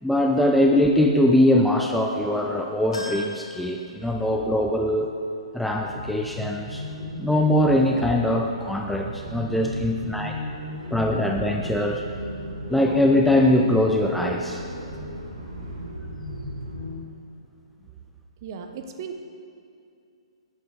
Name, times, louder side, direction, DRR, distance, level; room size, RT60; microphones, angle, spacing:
voice 1, 0.0-5.1 5.5-6.9 7.2-10.4 10.9-12.0 12.7-14.6, left 1 dB, ahead, 1 dB, 0.4 m, -22 dB
sound 1, 2.9-4.6 5.0-5.1 6.3-6.4, left 2 dB, 65° left, 1.5 m, -38 dB
sound 2, 5.6-16.9, equal, 70° right, 2.1 m, -35 dB
voice 2, 18.4-19.2, right 6 dB, 40° right, 6 dB, 0.8 m, -36 dB
11.5 x 8.3 x 3.9 m, 2.5 s
figure-of-eight pair, 120°, 3 cm